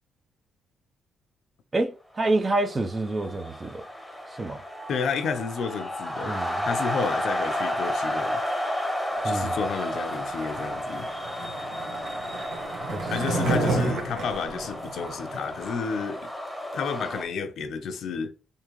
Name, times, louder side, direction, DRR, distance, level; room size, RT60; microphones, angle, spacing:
voice 1, 1.7-3.8 4.4-4.6 6.2-6.6 9.2-9.6 12.9-13.1, right 2 dB, 30° right, 0.5 m, -27 dB
sound 1, 2.4-17.2, equal, ahead, 1.0 m, -32 dB
voice 2, 4.9-8.4 9.2-11.1 13.1-16.3 16.7-18.3, left 6 dB, 65° left, 0.6 m, -31 dB
Skateboard, 10.3-15.7, right 3 dB, 70° right, 1.2 m, -31 dB
3.6 x 2.7 x 3.1 m
cardioid pair, 90°, 0 cm